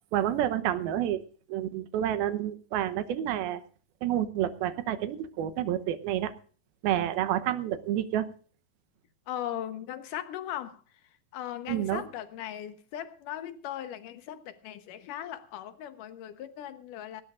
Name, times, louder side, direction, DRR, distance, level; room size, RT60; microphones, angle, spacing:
voice 1, 0.1-1.2 1.5-3.6 4.0-6.3 6.8-8.3 11.7-12.0, right 11 dB, 85° right, 2.9 m, -29 dB
voice 2, 9.3-10.8 11.3-17.2, left 11 dB, 70° left, 2.5 m, -38 dB
18.5 x 17.5 x 2.5 m
omnidirectional pair, 4.3 m